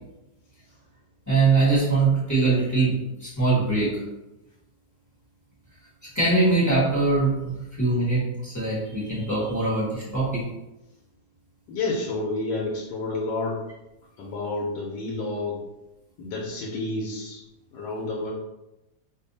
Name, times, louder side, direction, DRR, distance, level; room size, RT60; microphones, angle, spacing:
voice 1, 1.3-2.9 3.2-3.9 6.1-7.5 7.8-10.4, right 3 dB, 10° left, -8 dB, 1.0 m, -22 dB
voice 2, 11.7-13.6 14.2-15.6 16.2-17.4 17.7-18.3, left 2 dB, 85° left, -2 dB, 1.2 m, -30 dB
2.7 x 2.6 x 3.9 m, 0.96 s
omnidirectional pair, 1.8 m